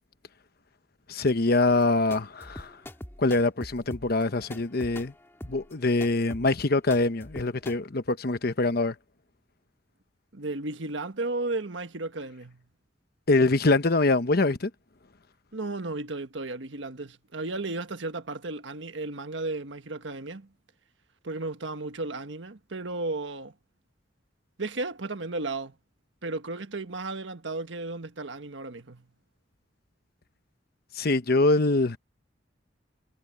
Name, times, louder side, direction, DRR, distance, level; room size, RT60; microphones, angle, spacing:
voice 1, 1.1-2.8 3.2-5.1 5.4-8.9 13.3-14.7 30.9-32.0, left 2 dB, 55° left, 1.0 m, -24 dB
sound 1, 1.7-7.8, left 1 dB, 15° left, 1.8 m, -43 dB
voice 2, 10.3-12.6 15.5-20.5 21.2-23.5 24.6-25.7 26.2-29.1, right 2 dB, 80° right, 1.4 m, -34 dB
head